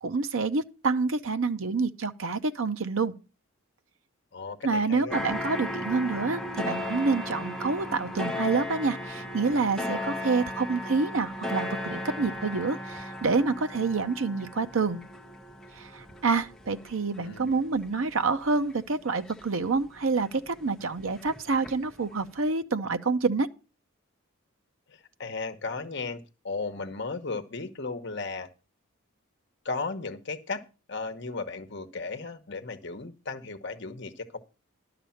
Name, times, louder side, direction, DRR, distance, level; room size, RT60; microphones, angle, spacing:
voice 1, 0.0-3.1 4.6-15.0 15.8-23.5, right 4 dB, 70° right, 0.7 m, -27 dB
voice 2, 4.3-5.2 17.2-17.7 24.9-28.5 29.6-30.6 30.9-34.4, left 4 dB, 50° left, 1.0 m, -35 dB
sound 1, 5.1-20.2 20.6-22.0 22.2-22.3, left 1 dB, ahead, 0.9 m, -36 dB
11.5 x 6.8 x 5.7 m
head